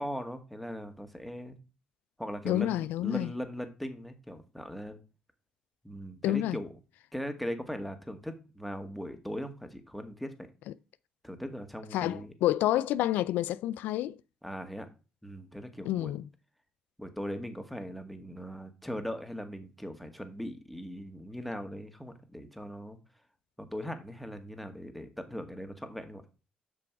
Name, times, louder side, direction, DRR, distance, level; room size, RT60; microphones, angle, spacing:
voice 1, 0.0-1.6 2.2-5.0 5.8-6.7 7.1-10.5 11.2-12.3 14.4-14.9 15.2-16.1 17.0-23.0 23.6-26.2, equal, ahead, 1.9 m, -39 dB
voice 2, 2.4-3.3 6.2-6.6 11.9-14.2 15.9-16.2, left 14 dB, 80° left, 0.3 m, -29 dB
7.7 x 6.1 x 4.7 m
supercardioid pair, 60°, 3 cm